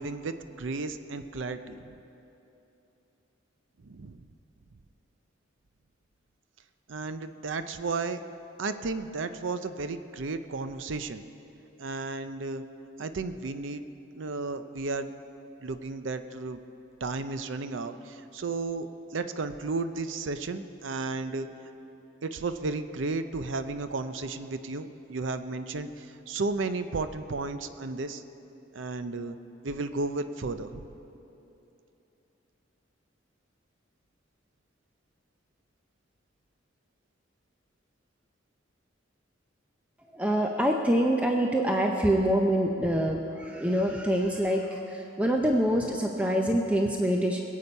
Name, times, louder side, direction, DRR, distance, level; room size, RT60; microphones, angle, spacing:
voice 1, 0.0-1.9 3.8-4.2 6.9-8.2 8.6-11.2 11.8-12.6 13.0-13.8 14.2-15.1 15.6-16.6 17.0-21.5 22.2-28.2 28.7-29.4 29.6-30.9 42.9-43.2, right 3 dB, 75° right, 10 dB, 0.6 m, -33 dB
voice 2, 40.1-47.4, equal, 5° right, 1 dB, 0.6 m, -25 dB
21.5 x 8.4 x 5.4 m, 2.9 s
head